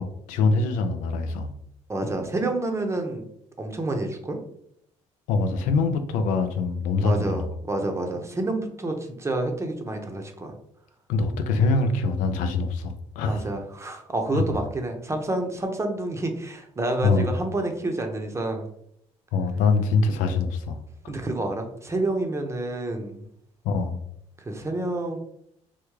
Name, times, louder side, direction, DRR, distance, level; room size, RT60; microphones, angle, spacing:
voice 1, 0.0-1.5 5.3-7.4 11.1-13.5 14.3-14.4 17.0-17.3 19.3-20.8 23.6-24.0, left 4 dB, 90° left, 7 dB, 0.4 m, -24 dB
voice 2, 1.9-3.2 3.6-4.4 7.0-10.5 13.3-18.7 21.1-23.2 24.4-25.2, right 2 dB, 20° right, 4 dB, 0.7 m, -28 dB
3.5 x 2.2 x 3.1 m, 0.72 s
cardioid pair, 85°, 13 cm